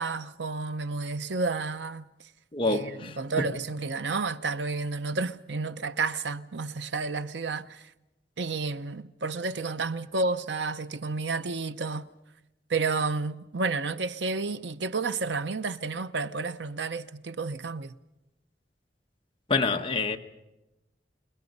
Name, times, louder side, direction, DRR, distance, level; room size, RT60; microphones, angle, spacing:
voice 1, 0.0-2.0 2.6-7.9 8.4-12.1 12.7-17.9, right 4 dB, 90° right, 0.8 m, -31 dB
voice 2, 2.5-3.1 19.5-20.2, left 3 dB, 30° left, 1.0 m, -26 dB
29.0 x 20.5 x 5.4 m
head